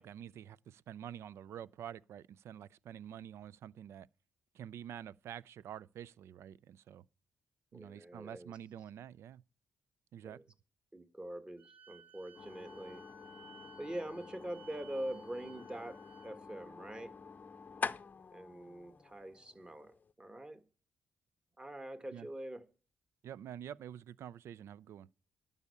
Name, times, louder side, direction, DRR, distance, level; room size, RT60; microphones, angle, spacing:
voice 1, 0.0-4.1 4.5-7.0 7.7-9.4 10.1-10.4 22.1-22.3 23.2-25.1, right 10 dB, 75° right, 0.4 m, -48 dB
voice 2, 7.7-8.6 10.2-10.4 10.9-13.0 13.8-17.1 18.3-20.6 21.6-22.6, right 1 dB, 20° right, 1.6 m, -44 dB
Wind instrument woodwind instrument, 11.6-16.3, right 3 dB, 35° right, 1.5 m, -59 dB
sound 1, 12.3-20.1, left 5 dB, 35° left, 0.6 m, -47 dB
12.0 x 5.5 x 8.3 m
cardioid pair, 80°, 5 cm